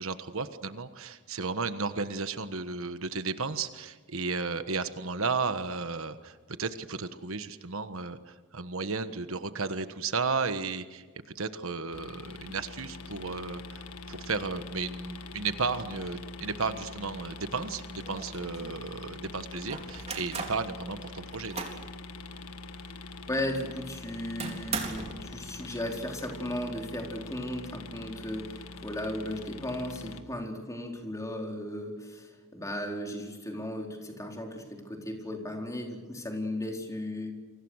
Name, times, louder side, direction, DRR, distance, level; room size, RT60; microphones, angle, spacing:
voice 1, 0.0-11.1 11.3-21.7, right 4 dB, 65° right, 10 dB, 1.4 m, -34 dB
sound 1, 11.9-30.2, left 3 dB, 90° left, 1.6 m, -44 dB
sound 2, 17.6-17.7 18.0-18.8 19.7-20.6 21.1-21.9 22.3-22.4 22.9-23.0 24.4-25.2, right 4 dB, 30° right, 3.9 m, -37 dB
voice 2, 23.3-37.3, left 1 dB, 15° left, 1 dB, 4.4 m, -36 dB
30.0 x 24.5 x 6.5 m, 1.3 s
head